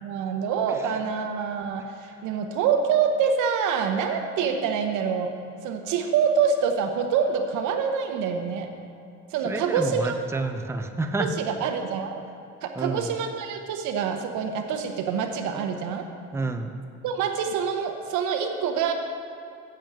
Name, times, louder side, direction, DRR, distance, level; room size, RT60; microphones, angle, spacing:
voice 1, 0.0-5.3 5.6-8.7 9.3-10.5 11.2-12.1 12.6-16.1 17.0-18.9, right 6 dB, 85° right, 5 dB, 1.0 m, -26 dB
voice 2, 9.4-11.3 12.8-13.1 16.3-16.7, right 3 dB, 10° right, 5 dB, 0.7 m, -29 dB
7.7 x 6.9 x 7.6 m, 2.6 s
cardioid pair, 90°, 29 cm